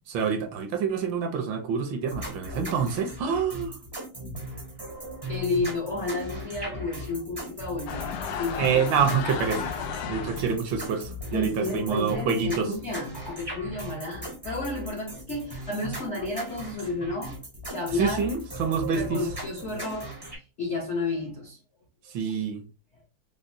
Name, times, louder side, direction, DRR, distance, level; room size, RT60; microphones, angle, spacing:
voice 1, 0.1-3.8 8.6-9.7 10.1-12.7 17.9-19.3 22.1-22.6, right 6 dB, 70° right, 1.3 m, -27 dB
sound 1, 2.1-20.4, equal, 35° right, 0.4 m, -38 dB
voice 2, 5.3-8.6 9.2-9.4 11.3-17.4 17.7-18.3 18.9-21.6, left 3 dB, 60° left, 0.7 m, -32 dB
sound 2, 7.9-10.6, left 7 dB, 85° left, 1.4 m, -33 dB
5.0 x 2.0 x 2.6 m
omnidirectional pair, 2.3 m